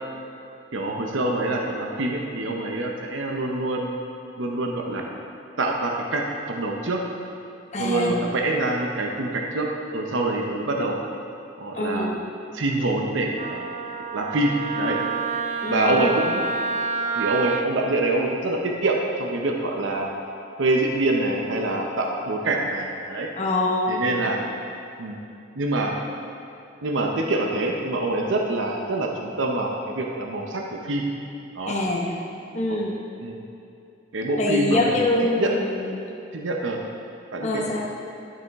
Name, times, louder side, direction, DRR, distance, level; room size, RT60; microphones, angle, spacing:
voice 1, 0.7-4.0 4.4-5.0 5.6-7.0 7.8-11.0 11.6-12.1 12.5-13.7 14.1-15.0 15.7-16.4 17.2-20.1 20.6-23.3 23.9-24.4 25.0-25.2 25.6-25.9 26.8-31.1 31.6-31.8 32.7-32.8 33.2-33.4 34.1-35.1 35.4-35.5 36.3-36.8 37.3-37.7, right 2 dB, 80° right, 0 dB, 0.7 m, -25 dB
voice 2, 7.7-8.1 11.7-12.2 15.6-16.0 23.4-24.0 31.7-32.1 32.5-33.0 34.4-36.0 37.4-37.9, left 2 dB, 35° left, -2 dB, 0.9 m, -24 dB
Wind instrument woodwind instrument, 13.4-17.7, right 4 dB, 35° right, 0.4 m, -28 dB
12.0 x 6.1 x 3.5 m, 2.6 s
head